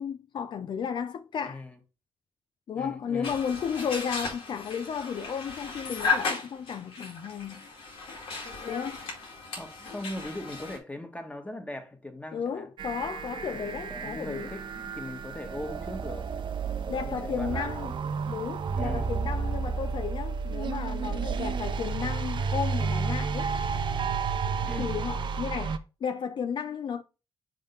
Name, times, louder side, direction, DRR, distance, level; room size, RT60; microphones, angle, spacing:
voice 1, 0.0-1.6 2.7-7.6 8.6-9.0 12.3-14.5 16.9-18.0 18.3-23.5 24.8-27.0, left 7 dB, 60° left, 0.5 m, -33 dB
voice 2, 1.4-1.8 2.7-3.4 9.5-12.7 13.5-16.3 16.9-18.4 18.7-19.1 24.6-25.0, left 1 dB, 15° left, 1.5 m, -40 dB
sound 1, 3.2-10.8, left 4 dB, 90° left, 2.2 m, -35 dB
sound 2, 12.8-25.8, right 5 dB, 65° right, 0.7 m, -31 dB
5.6 x 3.8 x 5.2 m
cardioid pair, 75°, 9 cm